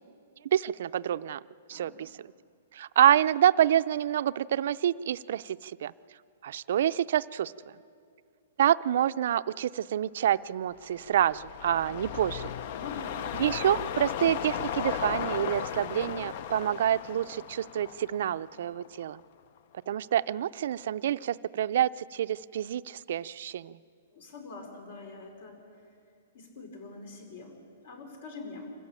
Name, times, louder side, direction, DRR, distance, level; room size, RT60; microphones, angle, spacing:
voice 1, 0.5-1.4 1.7-2.1 2.7-5.9 6.4-7.5 8.6-12.5 13.4-19.2 19.9-23.8, right 10 dB, 60° right, 14 dB, 0.5 m, -27 dB
sound 1, 10.8-19.2 19.6-19.7, left 9 dB, 45° left, 0.5 m, -36 dB
voice 2, 12.7-13.2 24.1-25.6 26.3-28.7, left 3 dB, 60° left, 3 dB, 5.3 m, -44 dB
25.5 x 14.5 x 8.9 m, 2.3 s
hypercardioid pair, 160°, 0 cm